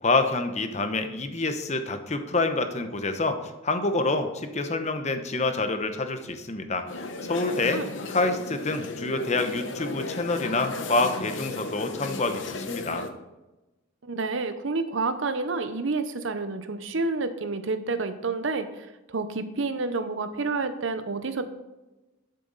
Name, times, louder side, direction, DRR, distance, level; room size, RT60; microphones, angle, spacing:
voice 1, 0.0-6.9 7.3-7.8 8.1-13.1, left 3 dB, 35° left, 7 dB, 0.9 m, -27 dB
sound 1, 6.9-13.1, left 3 dB, 65° left, 0.9 m, -35 dB
voice 2, 14.0-18.7 19.1-21.4, right 3 dB, 70° right, 10 dB, 0.8 m, -29 dB
12.0 x 6.7 x 4.0 m, 1.0 s
head